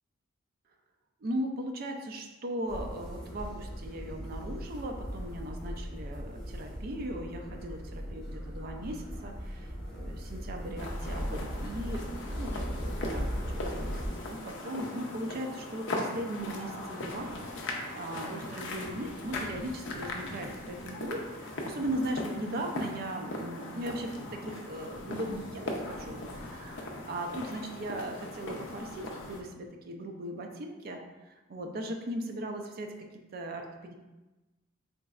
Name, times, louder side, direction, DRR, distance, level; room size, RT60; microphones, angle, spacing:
voice 1, 1.2-13.3 13.7-33.9, right 1 dB, 45° right, 4 dB, 0.4 m, -38 dB
sound 1, 2.7-14.1, equal, 5° left, 0.9 m, -38 dB
sound 2, 10.8-29.4, left 2 dB, 60° left, 0.5 m, -39 dB
3.8 x 3.0 x 2.3 m, 1.1 s
head